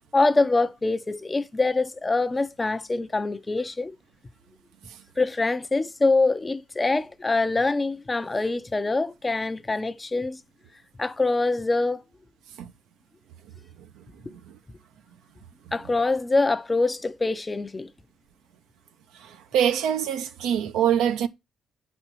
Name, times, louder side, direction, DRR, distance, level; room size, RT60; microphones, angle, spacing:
voice 1, 0.1-4.0 5.2-10.4 11.0-12.0 15.7-17.9, left 3 dB, 25° left, 0.6 m, -24 dB
voice 2, 13.8-14.6 19.1-21.3, right 9 dB, 80° right, 0.8 m, -26 dB
8.7 x 4.3 x 4.5 m
supercardioid pair, 65°, 0 cm